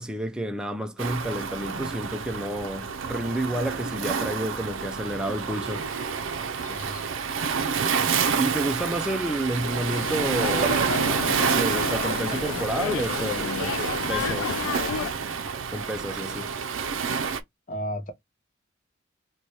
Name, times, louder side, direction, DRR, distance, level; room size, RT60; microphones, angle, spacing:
voice 1, 0.0-5.8 8.4-10.8 11.5-13.8 14.1-14.5 15.7-16.5, right 1 dB, 5° right, 0.3 m, -30 dB
Waves surf, 1.0-17.4, right 6 dB, 65° right, 0.5 m, -28 dB
voice 2, 6.6-7.1 17.7-18.1, equal, 40° left, 0.7 m, -33 dB
sound 1, 8.8-15.1, left 8 dB, 80° left, 0.3 m, -32 dB
Laughter, 10.2-10.9 11.2-12.6 13.5-13.9 15.2-15.3 16.3-16.4, right 6 dB, 40° right, 0.8 m, -33 dB
4.5 x 2.2 x 2.7 m
head